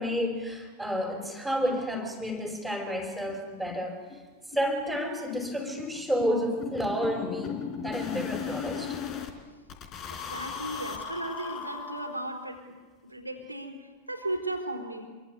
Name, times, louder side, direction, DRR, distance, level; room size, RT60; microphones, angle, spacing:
voice 1, 0.0-4.0 4.5-9.0, equal, ahead, 1 dB, 4.9 m, -30 dB
sound 1, 2.5-2.6 2.9-3.0 3.3-3.4 3.7-3.8 4.1-9.3 9.7-12.5, left 7 dB, 35° left, 4.0 m, -38 dB
voice 2, 10.1-12.8 13.0-15.1, right 1 dB, 85° right, 4 dB, 3.9 m, -36 dB
26.0 x 23.5 x 8.1 m, 1.4 s
figure-of-eight pair, 90°, 0 cm